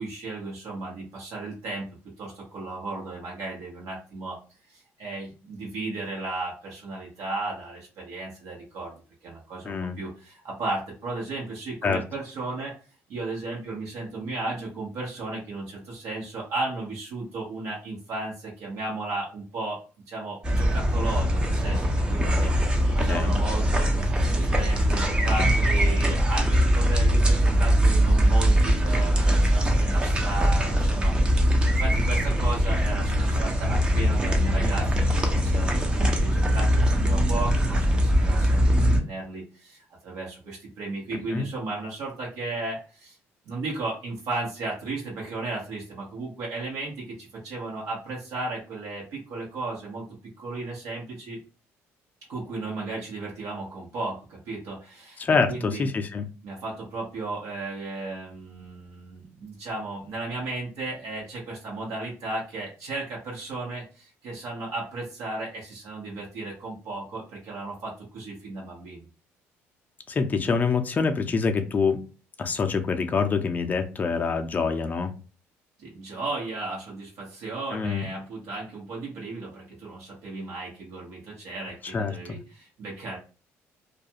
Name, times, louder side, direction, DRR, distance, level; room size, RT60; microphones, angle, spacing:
voice 1, 0.0-1.9 2.2-4.4 4.7-9.0 9.2-12.7 13.1-19.8 20.1-43.2 43.5-50.0 50.4-51.4 52.3-55.2 55.5-55.9 56.4-69.0 75.8-83.2, right 2 dB, 70° right, -4 dB, 1.0 m, -35 dB
voice 2, 9.6-10.0 11.8-12.0 23.1-23.4 41.1-41.5 55.2-56.3 70.1-72.0 72.4-75.1 77.7-78.1 81.8-82.4, left 5 dB, 30° left, 6 dB, 0.5 m, -26 dB
sound 1, 20.4-39.0, equal, 15° right, 0.6 m, -22 dB
2.4 x 2.3 x 2.8 m, 0.34 s
cardioid pair, 110°, 6 cm